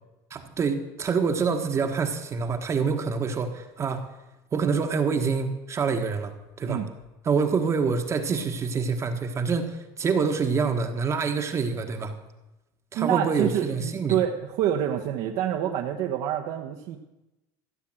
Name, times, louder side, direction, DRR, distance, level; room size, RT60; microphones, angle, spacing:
voice 1, 0.3-4.1 4.5-6.8 7.2-12.1 12.9-14.2, right 5 dB, 25° right, 6 dB, 1.3 m, -26 dB
voice 2, 12.9-17.0, right 10 dB, 65° right, 3 dB, 1.1 m, -27 dB
15.0 x 7.4 x 7.7 m, 0.99 s
cardioid pair, 135°, 10 cm